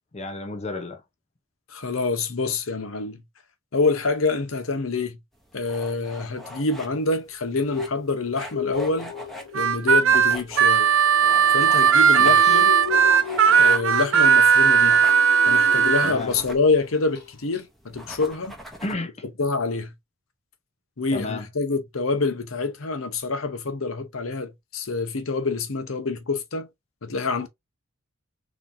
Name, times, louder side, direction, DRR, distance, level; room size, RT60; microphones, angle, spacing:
voice 1, 0.1-1.0 12.2-12.6 16.0-16.3 18.8-19.1 21.1-21.5, left 2 dB, 30° left, 0.6 m, -32 dB
voice 2, 1.7-3.2 3.7-5.2 5.5-9.1 9.5-10.9 11.5-12.7 13.6-15.0 15.5-18.6 19.4-19.9 21.0-26.7 27.0-27.5, left 3 dB, 85° left, 0.9 m, -26 dB
sound 1, 5.3-18.9, equal, ahead, 1.0 m, -42 dB
sound 2, 7.6-16.6 16.9-17.3 17.5-17.6, left 5 dB, 50° left, 1.3 m, -36 dB
Harmonica, 9.5-16.1, right 7 dB, 65° right, 0.5 m, -17 dB
3.9 x 3.1 x 2.7 m
head